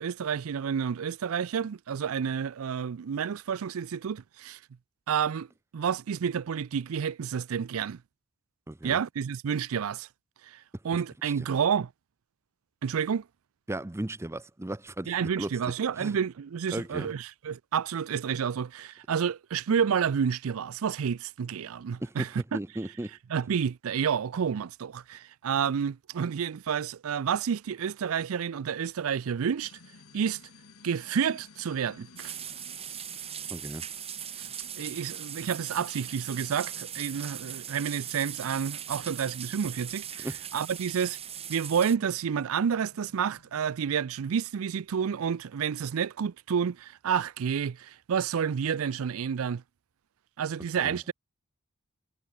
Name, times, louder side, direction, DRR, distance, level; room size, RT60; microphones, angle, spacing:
voice 1, 0.0-4.6 5.1-5.5 5.7-8.0 8.8-10.1 10.4-11.9 12.8-13.2 15.1-22.6 23.3-29.7 30.1-30.4 30.8-32.3 34.4-34.5 34.8-40.3 40.5-41.2 41.5-49.6 50.4-51.1, right 7 dB, 70° right, 0.4 m, -30 dB
voice 2, 8.7-9.0 10.9-11.3 13.7-15.5 16.0-16.2 16.7-17.1 22.0-22.3 22.5-23.1 33.5-33.8 40.2-40.4 50.8-51.0, right 1 dB, 10° right, 0.5 m, -36 dB
sound 1, 29.6-44.1, left 3 dB, 80° left, 2.3 m, -55 dB
sound 2, 32.2-42.0, right 9 dB, 30° right, 1.1 m, -39 dB
head